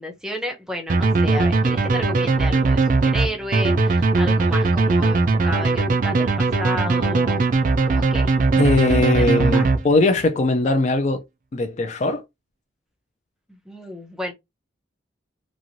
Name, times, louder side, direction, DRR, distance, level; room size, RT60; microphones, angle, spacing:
voice 1, 0.0-7.5 7.9-8.3 9.0-9.7 13.5-14.3, equal, 5° right, 0.6 m, -32 dB
sound 1, 0.9-10.2, right 3 dB, 45° right, 0.3 m, -19 dB
voice 2, 8.6-11.2 11.5-12.2, left 2 dB, 35° left, 0.3 m, -20 dB
3.0 x 2.4 x 2.6 m
head